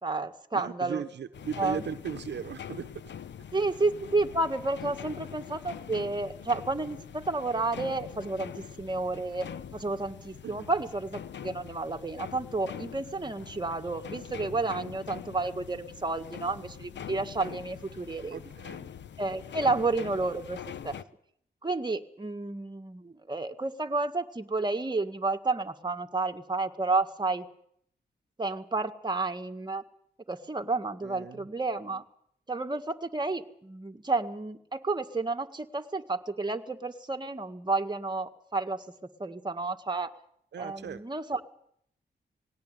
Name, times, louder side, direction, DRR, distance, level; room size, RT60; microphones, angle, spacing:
voice 1, 0.0-1.0 1.6-1.8 3.5-8.5 8.8-18.4 19.2-21.0 21.6-27.5 28.4-29.8 30.3-32.0 32.5-38.9 39.2-40.1 40.6-41.4, right 3 dB, 25° right, 5 dB, 1.9 m, -31 dB
voice 2, 0.5-2.9 10.4-10.7 18.3-18.9 31.0-31.5 40.5-41.0, right 8 dB, 70° right, 10 dB, 1.0 m, -37 dB
sound 1, 1.3-21.0, left 8 dB, 80° left, 1.0 m, -44 dB
19.0 x 18.0 x 9.2 m, 0.67 s
cardioid pair, 70°, 18 cm